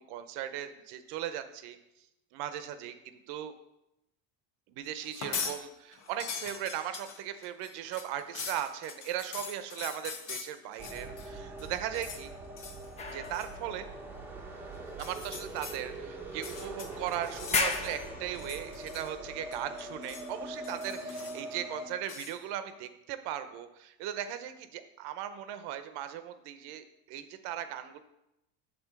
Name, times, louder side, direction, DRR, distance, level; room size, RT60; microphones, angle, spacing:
voice 1, 0.1-1.8 2.3-3.5 4.7-12.3 13.1-13.9 15.0-28.0, right 11 dB, 60° right, 10 dB, 0.8 m, -38 dB
sound 1, 5.0-5.6 5.9-11.3 11.6-12.2 12.6-12.9 13.2-13.5 14.9-15.8 16.3-18.0 18.3-19.3 19.5-20.3 20.6-21.5 22.0-22.4, left 6 dB, 40° left, 1.0 m, -42 dB
sound 2, 10.8-21.9, right 2 dB, 5° right, 0.7 m, -43 dB
sound 3, 13.0-14.9 15.7-15.8 16.5-17.1 17.4-19.0, left 4 dB, 15° left, 0.3 m, -36 dB
6.8 x 3.8 x 5.9 m, 0.89 s
cardioid pair, 135°, 45 cm